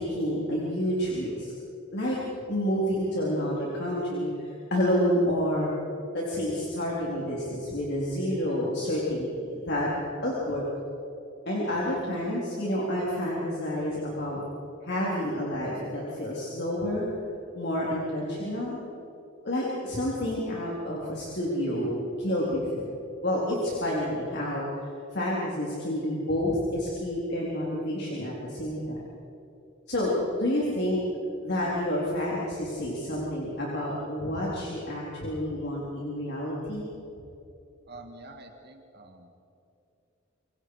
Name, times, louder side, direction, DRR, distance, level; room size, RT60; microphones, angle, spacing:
voice 1, 0.0-1.5 1.9-2.2 2.5-5.7 6.1-9.9 10.2-10.6 11.5-14.4 14.8-17.1 17.5-18.8 19.4-21.9 22.2-22.9 23.2-24.8 25.1-29.0 29.9-30.1 30.4-31.0 31.4-36.8, equal, 60° left, -5 dB, 4.1 m, -29 dB
voice 2, 37.9-39.3, right 2 dB, 55° right, 3 dB, 2.0 m, -47 dB
27.0 x 24.0 x 5.0 m, 2.8 s
head